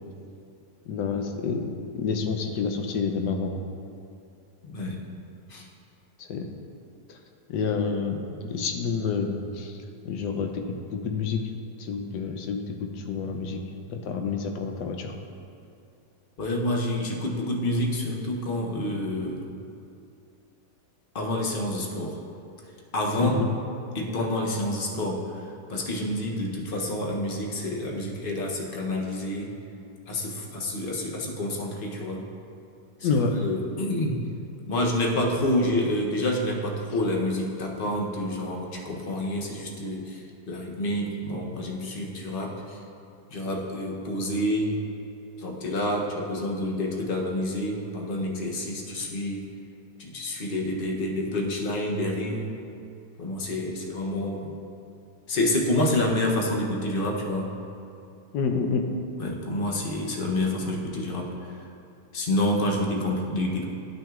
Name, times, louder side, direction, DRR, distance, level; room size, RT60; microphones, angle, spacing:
voice 1, 0.9-1.6 1.9-3.5 6.2-6.4 7.1-7.2 7.5-8.1 8.5-9.8 10.0-10.6 10.9-11.4 11.8-12.6 13.0-13.6 13.9-15.1 23.2-23.5 33.0-33.3 58.3-58.8, left 5 dB, 80° left, 4 dB, 1.3 m, -28 dB
voice 2, 4.6-5.0 5.5-5.6 16.4-19.5 21.1-22.2 22.9-23.5 23.9-25.2 25.7-29.5 30.1-32.2 33.0-34.2 34.7-42.8 43.3-44.8 45.4-49.4 50.0-52.6 53.2-54.5 55.3-57.5 59.2-61.3 62.1-63.6, left 1 dB, 45° left, -1 dB, 0.7 m, -28 dB
11.5 x 6.0 x 2.4 m, 2.6 s
omnidirectional pair, 1.8 m